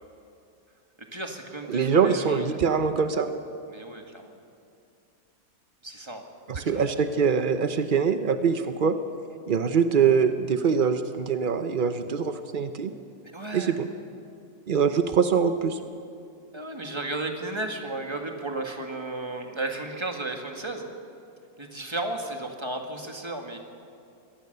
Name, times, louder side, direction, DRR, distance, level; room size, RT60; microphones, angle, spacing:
voice 1, 1.1-2.5 3.7-4.4 5.8-6.2 6.5-6.9 13.3-13.8 16.5-20.9 21.6-23.6, right 2 dB, 15° right, 3 dB, 1.8 m, -34 dB
voice 2, 1.7-3.4 6.5-9.0 9.5-12.9 13.5-13.9 14.7-15.8, right 6 dB, 80° right, 9 dB, 0.4 m, -23 dB
23.5 x 18.0 x 6.8 m, 2.4 s
omnidirectional pair, 2.0 m